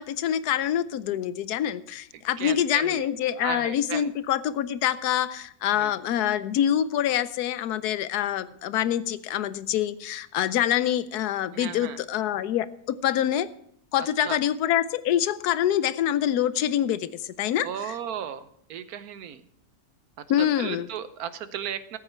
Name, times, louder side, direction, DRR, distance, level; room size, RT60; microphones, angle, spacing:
voice 1, 0.0-13.5 13.9-17.9 20.3-20.9, left 11 dB, 85° left, 15 dB, 1.2 m, -26 dB
voice 2, 2.1-3.1 3.4-4.1 5.7-6.0 11.5-12.0 14.2-14.4 17.6-19.4 20.2-22.0, right 9 dB, 75° right, 13 dB, 1.2 m, -35 dB
13.5 x 8.8 x 4.4 m, 0.69 s
omnidirectional pair, 1.6 m